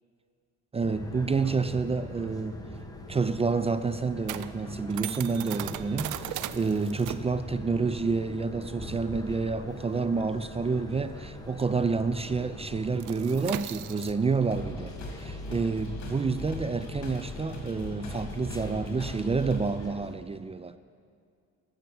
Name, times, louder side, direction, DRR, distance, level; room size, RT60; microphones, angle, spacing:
voice 1, 0.7-2.6 3.1-20.8, right 4 dB, 20° right, 0.4 m, -29 dB
sound 1, 0.8-20.2, left 1 dB, 10° left, 1.1 m, -43 dB
sound 2, 2.7-11.7 12.0-12.2 12.5-18.3, right 14 dB, 85° right, 0.5 m, -40 dB
sound 3, 14.5-19.9, left 1 dB, 65° left, 2.3 m, -39 dB
12.0 x 6.7 x 7.6 m
cardioid pair, 90°, 30 cm